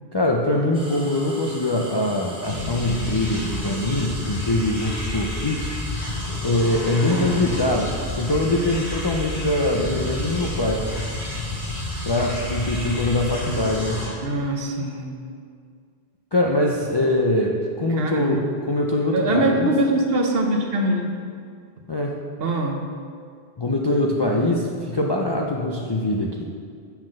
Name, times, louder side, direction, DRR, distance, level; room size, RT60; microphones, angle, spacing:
voice 1, 0.1-5.7 6.4-10.9 12.0-14.2 16.3-18.4 18.7-19.7 21.9-22.1 23.6-26.5, left 1 dB, 40° left, -1 dB, 0.3 m, -23 dB
sound 1, 0.7-14.1, right 1 dB, 5° right, 1.1 m, -40 dB
sound 2, 2.4-14.1, left 1 dB, 85° left, 2.3 m, -30 dB
voice 2, 14.2-15.1 18.0-18.5 19.1-21.1 22.4-22.8, right 1 dB, 65° right, 2 dB, 1.0 m, -23 dB
7.1 x 3.9 x 6.3 m, 2.1 s
omnidirectional pair, 1.1 m